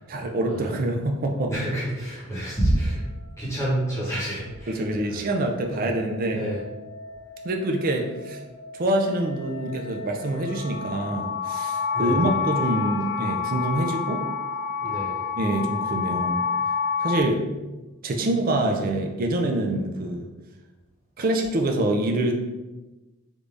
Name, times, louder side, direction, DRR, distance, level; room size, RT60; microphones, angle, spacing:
voice 1, 0.1-1.5 4.7-6.4 7.4-8.4 8.7-14.2 15.4-16.4 17.0-17.5 18.0-20.3 21.2-22.4, right 1 dB, 40° right, 2 dB, 0.4 m, -25 dB
voice 2, 1.5-3.0 3.4-4.8 5.1-5.2 5.7-5.9 6.3-6.6 11.9-12.3 14.8-15.2, right 1 dB, 15° left, -8 dB, 1.0 m, -28 dB
sound 1, 4.5-17.2, left 6 dB, 85° left, 0.5 m, -30 dB
3.5 x 2.5 x 3.2 m, 1.1 s
head